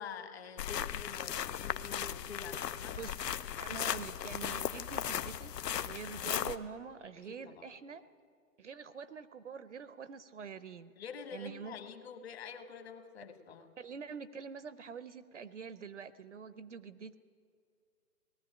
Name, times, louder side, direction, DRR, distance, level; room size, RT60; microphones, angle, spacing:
voice 1, 0.0-3.0 7.2-7.7 11.0-13.7, left 6 dB, 40° left, 7 dB, 1.5 m, -47 dB
sound 1, 0.6-6.6, left 9 dB, 85° left, 0.9 m, -37 dB
voice 2, 3.6-8.0 8.6-10.9 11.3-11.8 13.8-17.2, right 6 dB, 50° right, 15 dB, 0.6 m, -45 dB
19.0 x 14.5 x 9.9 m, 2.3 s
hypercardioid pair, 175°, 48 cm